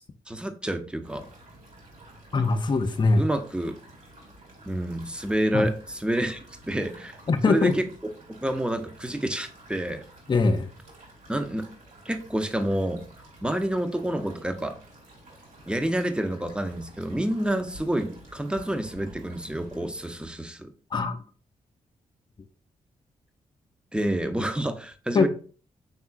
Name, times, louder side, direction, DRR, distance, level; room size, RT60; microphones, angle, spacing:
voice 1, 0.3-1.3 3.2-3.8 4.7-6.4 6.7-7.2 7.5-7.9 8.3-10.0 11.3-11.7 12.0-13.0 13.4-14.8 15.7-20.7 23.9-25.3, right 1 dB, 5° right, 0.7 m, -28 dB
sound 1, 1.0-20.3, right 1 dB, 60° right, 2.2 m, -51 dB
voice 2, 2.3-3.3 5.5-5.7 7.3-7.7 10.3-10.7 20.9-21.2 25.1-25.3, left 3 dB, 30° left, 0.6 m, -22 dB
5.6 x 3.5 x 2.3 m
supercardioid pair, 55°, 14 cm